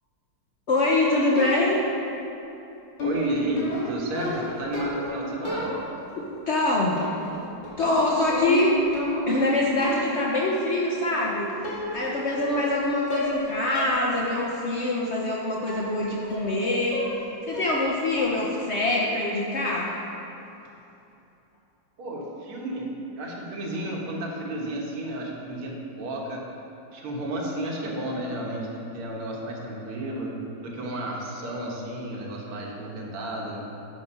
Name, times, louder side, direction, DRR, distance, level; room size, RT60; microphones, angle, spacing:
voice 1, 0.7-1.8 6.5-7.1 7.8-8.8 9.3-17.0 17.5-20.0, left 2 dB, 85° left, -3 dB, 0.6 m, -24 dB
sound 1, 1.4-1.9 3.0-5.1 5.4-6.1 7.0-7.4 7.6-9.4 9.8-10.2 11.1-11.2 11.6-12.1 12.4-12.8 13.1-13.4 13.7-14.0 14.4-14.5 15.7-15.9 16.3-16.6 16.9-17.2 17.5-17.9 18.2-18.5, left 1 dB, 60° left, 2.7 m, -32 dB
voice 2, 3.0-5.8 22.0-26.4 26.9-30.3 30.6-33.6, right 1 dB, 90° right, -2 dB, 2.2 m, -32 dB
8.6 x 5.9 x 5.5 m, 2.9 s
omnidirectional pair, 2.3 m